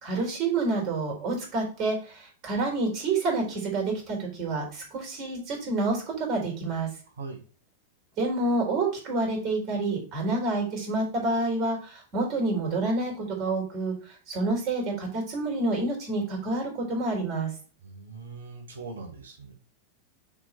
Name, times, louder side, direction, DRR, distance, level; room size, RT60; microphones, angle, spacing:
voice 1, 0.0-6.9 8.2-17.5, right 2 dB, 40° right, 0 dB, 4.2 m, -28 dB
voice 2, 17.8-19.5, right 4 dB, 65° right, 3 dB, 2.0 m, -41 dB
6.7 x 4.9 x 4.8 m, 0.39 s
figure-of-eight pair, 90°, 0 cm